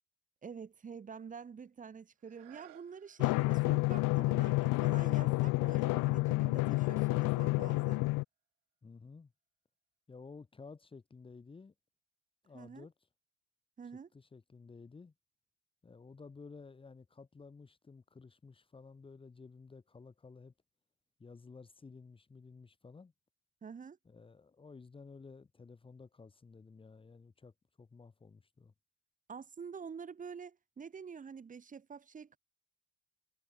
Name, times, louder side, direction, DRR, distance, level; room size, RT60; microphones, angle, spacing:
voice 1, 0.4-8.1 12.5-12.9 13.8-14.1 23.6-24.0 29.3-32.4, right 6 dB, 25° right, 5.1 m, -47 dB
sound 1, 2.2-7.8 8.4-8.5, right 19 dB, 85° right, 5.1 m, -64 dB
Drum, 3.2-8.2, left 22 dB, 75° left, 0.6 m, -29 dB
voice 2, 8.8-9.3 10.1-11.7 12.4-12.9 14.1-15.1 15.8-20.5 21.2-23.1 24.0-28.7, left 4 dB, 15° left, 3.0 m, -53 dB
cardioid pair, 170°, 32 cm